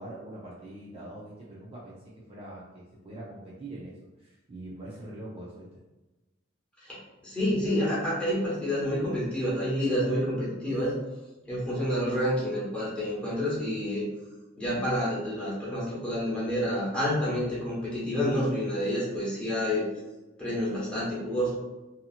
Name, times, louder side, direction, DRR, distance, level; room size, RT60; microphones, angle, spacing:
voice 1, 0.0-5.7 10.7-10.8, right 1 dB, 30° right, -6 dB, 0.5 m, -43 dB
voice 2, 7.2-10.9 11.5-14.1 14.6-19.9 20.4-21.5, equal, 5° left, -9 dB, 1.2 m, -28 dB
2.8 x 2.7 x 2.4 m, 1.1 s
head